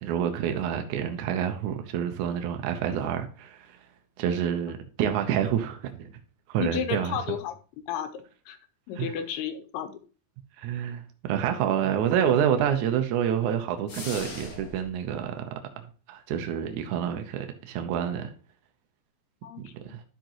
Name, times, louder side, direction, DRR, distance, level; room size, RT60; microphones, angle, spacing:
voice 1, 0.0-3.8 4.2-6.1 6.5-7.4 9.0-9.1 10.6-15.6 16.1-18.3 19.6-20.0, right 9 dB, 80° right, 1.7 m, -28 dB
voice 2, 6.6-7.5 7.9-8.6 8.9-9.9 19.4-20.0, left 9 dB, 80° left, 2.7 m, -33 dB
sound 1, 13.9-14.9, left 3 dB, 60° left, 1.1 m, -39 dB
11.5 x 5.2 x 3.0 m
omnidirectional pair, 4.5 m